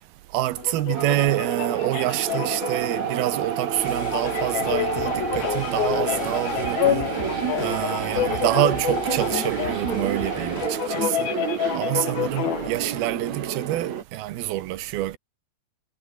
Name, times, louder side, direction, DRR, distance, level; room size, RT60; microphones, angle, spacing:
voice 1, 0.3-7.1 7.6-11.3 11.7-15.2, right 15 dB, 80° right, 3.1 m, -27 dB
sound 1, 0.6-12.7, left 12 dB, 80° left, 3.4 m, -29 dB
sound 2, 0.9-14.0, right 9 dB, 50° right, 3.0 m, -29 dB
sound 3, 3.8-10.7, left 4 dB, 35° left, 0.9 m, -37 dB
omnidirectional pair, 4.3 m